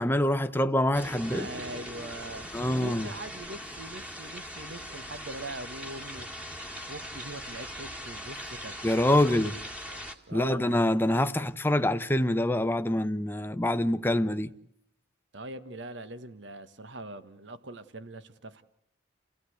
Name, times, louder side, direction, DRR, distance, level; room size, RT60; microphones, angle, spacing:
voice 1, 0.0-1.5 2.5-3.1 8.8-9.5 10.3-14.5, left 1 dB, 10° left, 0.8 m, -25 dB
sound 1, 0.9-10.1, equal, 5° right, 1.8 m, -40 dB
voice 2, 1.3-6.3 6.9-9.5 9.8-10.0 10.3-10.8 15.3-18.6, right 2 dB, 65° right, 1.4 m, -42 dB
29.5 x 16.0 x 8.0 m
head